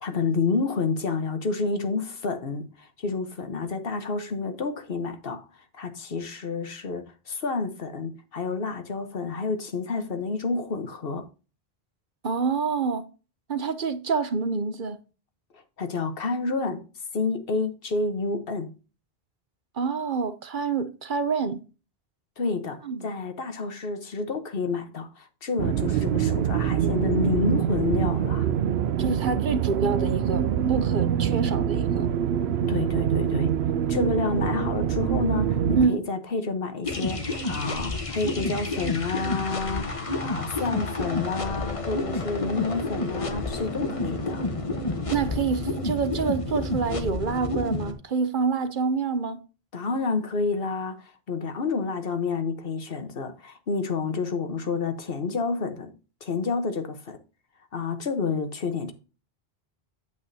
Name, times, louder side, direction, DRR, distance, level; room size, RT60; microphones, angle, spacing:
voice 1, 0.0-5.4 5.7-11.3 15.8-16.8 17.1-18.7 22.4-28.5 32.7-33.5 33.9-39.9 40.2-44.5 49.7-55.9 56.2-57.2 57.7-58.9, left 4 dB, 65° left, 1.3 m, -29 dB
voice 2, 12.2-13.0 13.5-15.0 19.8-21.6 22.9-23.0 29.0-32.1 35.7-36.0 45.1-49.4, right 5 dB, 55° right, 0.9 m, -27 dB
sound 1, 25.6-35.9, right 9 dB, 90° right, 0.9 m, -25 dB
sound 2, 36.8-47.9, left 2 dB, 35° left, 1.1 m, -30 dB
8.5 x 7.9 x 2.7 m
omnidirectional pair, 1.0 m